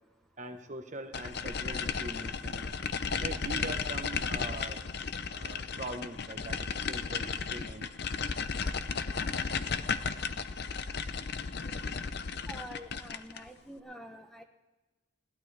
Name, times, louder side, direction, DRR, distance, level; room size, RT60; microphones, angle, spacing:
voice 1, 0.4-2.7 3.2-4.8 5.3-7.9, right 2 dB, 35° right, 6 dB, 1.1 m, -42 dB
sound 1, 1.1-13.5, left 5 dB, 55° left, 0.6 m, -34 dB
voice 2, 12.5-14.4, equal, ahead, 4 dB, 0.9 m, -47 dB
21.0 x 16.5 x 3.4 m, 1.1 s
head